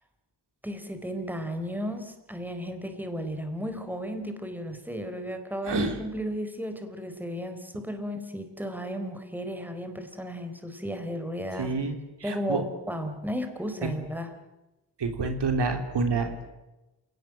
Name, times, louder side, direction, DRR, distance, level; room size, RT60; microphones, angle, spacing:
voice 1, 0.6-11.7 12.2-14.3, equal, 5° right, 7 dB, 4.0 m, -34 dB
voice 2, 5.6-6.0 11.6-11.9 12.2-12.6 15.0-16.5, right 4 dB, 75° right, 5 dB, 3.7 m, -28 dB
28.5 x 19.0 x 7.7 m, 1.0 s
cardioid pair, 80°, 41 cm